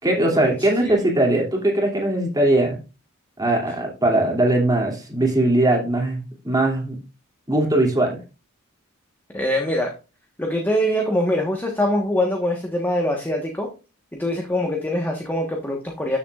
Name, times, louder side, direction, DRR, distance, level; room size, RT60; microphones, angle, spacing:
voice 1, 0.0-2.8 3.4-6.2 6.4-7.0 7.5-8.2, right 1 dB, 20° right, 0 dB, 2.7 m, -20 dB
voice 2, 9.3-9.9 10.4-13.7 14.1-16.2, left 1 dB, 10° left, 1 dB, 1.3 m, -23 dB
13.0 x 7.1 x 2.4 m, 0.31 s
head